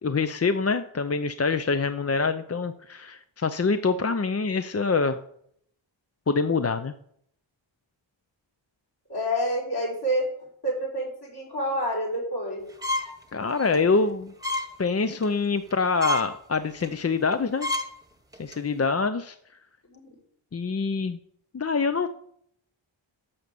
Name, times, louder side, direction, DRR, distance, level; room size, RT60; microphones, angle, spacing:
voice 1, 0.0-5.2 6.3-6.9 13.3-14.3 14.8-17.7 18.4-19.4 20.5-21.2 21.5-22.1, left 4 dB, 35° left, 10 dB, 0.6 m, -25 dB
voice 2, 9.1-10.3 10.6-12.7 19.9-20.1, equal, 55° left, -4 dB, 5.5 m, -28 dB
sound 1, 12.8-13.2 13.6-13.8 14.4-14.7 15.1-15.3 15.7-15.8 16.0-16.3 16.8-16.9 17.3-17.4 17.6-17.9 18.3-18.5, left 2 dB, 10° right, 1.2 m, -28 dB
11.0 x 6.6 x 6.9 m, 0.70 s
wide cardioid pair, 85°, 47 cm